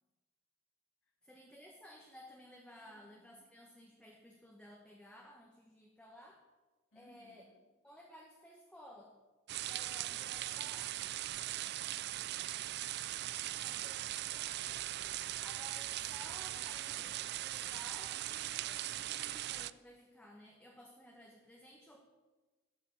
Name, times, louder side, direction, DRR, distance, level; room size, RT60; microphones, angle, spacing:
voice 1, 1.2-6.4 6.9-7.4 7.8-9.2 9.6-11.0 13.5-14.0 14.3-14.8 15.4-22.0, equal, 5° left, -1 dB, 1.1 m, -56 dB
voice 2, 2.7-3.5 6.9-7.6 11.6-12.4, left 1 dB, 70° left, 2 dB, 2.7 m, -68 dB
sound 1, 9.5-19.7, right 14 dB, 50° right, 0.3 m, -40 dB
12.5 x 7.3 x 7.2 m, 1.2 s
head